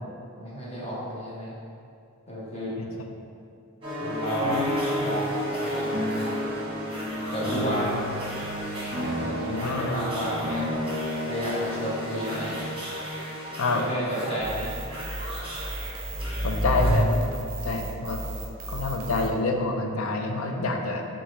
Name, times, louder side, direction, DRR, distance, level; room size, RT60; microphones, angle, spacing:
voice 1, 0.4-1.5 2.3-2.7 4.0-4.7 5.0-6.0 7.3-8.1 9.0-10.7 11.3-12.7 13.7-14.7, equal, 30° left, -7 dB, 1.0 m, -31 dB
sound 1, 3.8-16.9, equal, 25° right, 1.0 m, -31 dB
voice 2, 9.5-9.9 13.6-13.8 16.4-17.2 17.6-18.2 18.7-21.1, left 3 dB, 75° left, 3 dB, 0.5 m, -27 dB
sound 2, 14.4-19.3, right 1 dB, 40° right, 0.6 m, -36 dB
6.4 x 2.4 x 3.1 m, 2.5 s
head